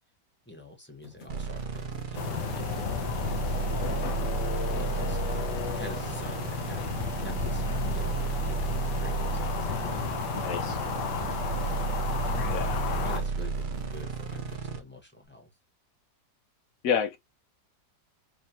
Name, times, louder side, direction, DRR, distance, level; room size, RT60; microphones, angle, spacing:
voice 1, 0.5-5.2 5.7-7.6 7.9-10.5 11.1-11.5 12.3-12.6 13.0-15.5, left 1 dB, 10° left, 0.9 m, -47 dB
sound 1, 1.0-14.6, left 3 dB, 45° left, 1.4 m, -52 dB
sound 2, 1.3-14.8, right 5 dB, 55° right, 0.5 m, -32 dB
sound 3, 2.1-13.2, left 7 dB, 85° left, 1.4 m, -33 dB
voice 2, 10.3-10.8 12.5-12.8 16.8-17.2, left 7 dB, 60° left, 1.1 m, -29 dB
5.1 x 3.1 x 2.8 m
omnidirectional pair, 1.8 m